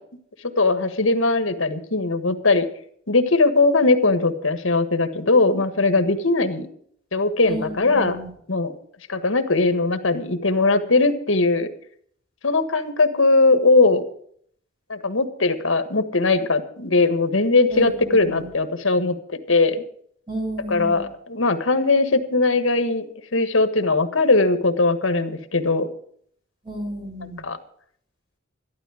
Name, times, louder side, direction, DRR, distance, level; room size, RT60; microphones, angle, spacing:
voice 1, 0.6-2.7 3.1-6.7 7.1-8.2 8.5-8.7 9.1-11.7 12.4-14.0 14.9-19.2 19.5-19.8 20.7-23.1 23.3-25.9 27.4-27.6, left 3 dB, 85° left, 9 dB, 1.5 m, -20 dB
voice 2, 7.4-8.3 17.7-18.5 20.3-21.1 26.6-27.4, right 1 dB, 25° right, 0 dB, 5.4 m, -32 dB
12.5 x 12.5 x 5.0 m, 0.62 s
head